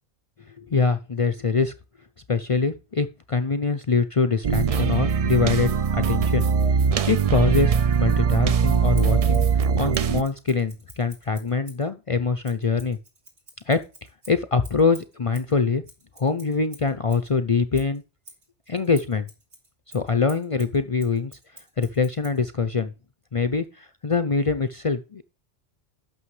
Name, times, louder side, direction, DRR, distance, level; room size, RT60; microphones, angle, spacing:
voice 1, 0.6-1.7 2.3-6.5 7.0-9.5 9.8-13.0 13.7-13.8 14.3-15.8 16.2-18.0 18.7-19.3 19.9-21.3 21.8-22.9 23.3-25.2, left 4 dB, 40° left, 10 dB, 0.5 m, -24 dB
sound 1, 4.4-10.2, right 6 dB, 50° right, 0.4 m, -21 dB
Scissors, 8.9-11.9 12.4-17.3 17.7-22.4, right 2 dB, 85° right, 2.9 m, -49 dB
11.0 x 6.8 x 3.2 m, 0.31 s
omnidirectional pair, 1.1 m